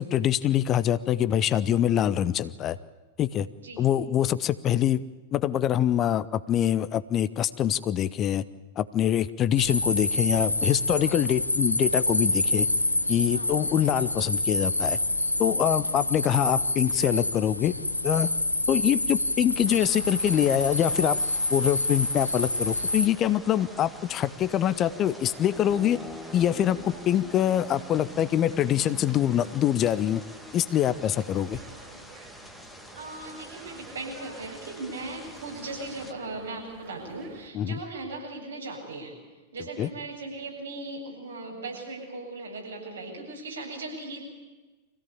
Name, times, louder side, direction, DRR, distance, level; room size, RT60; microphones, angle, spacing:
voice 1, 0.0-2.8 3.2-3.5 3.8-5.0 5.3-8.4 8.8-12.7 13.1-15.0 15.4-17.7 18.0-18.3 18.7-21.2 21.5-26.0 26.3-30.2 30.5-31.6 37.5-37.8 39.8-39.9, left 11 dB, 30° left, 15 dB, 0.8 m, -24 dB
sound 1, 9.6-23.1, left 1 dB, 85° left, 1.2 m, -27 dB
sound 2, 19.6-36.1, left 1 dB, ahead, 2.0 m, -45 dB
sound 3, 23.1-37.5, right 5 dB, 40° right, 5.3 m, -50 dB
voice 2, 33.0-39.1 39.5-44.2, right 2 dB, 70° right, -2 dB, 7.9 m, -38 dB
25.5 x 16.5 x 8.6 m, 1.2 s
figure-of-eight pair, 90°, 0 cm